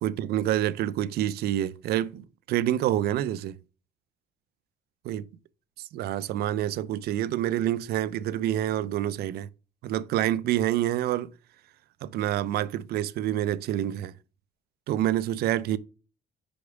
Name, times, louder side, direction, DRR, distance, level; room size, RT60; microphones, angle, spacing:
voice 1, 0.0-3.6 5.0-5.3 5.9-9.5 9.8-11.3 12.0-14.1 14.9-15.8, right 12 dB, 70° right, 0.5 m, -27 dB
5.3 x 4.7 x 4.8 m
cardioid pair, 110°, 17 cm